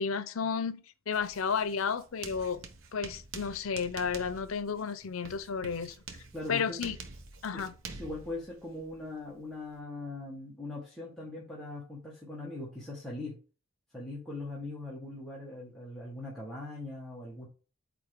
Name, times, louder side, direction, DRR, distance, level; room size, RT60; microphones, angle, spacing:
voice 1, 0.0-2.6 2.9-6.0 6.5-7.0 7.4-7.7, left 6 dB, 80° left, 0.6 m, -32 dB
Writing, 1.1-9.8, right 4 dB, 70° right, 1.1 m, -47 dB
voice 2, 6.3-6.9 7.5-13.3 13.9-17.5, left 2 dB, ahead, 1.7 m, -41 dB
8.5 x 3.7 x 3.5 m
head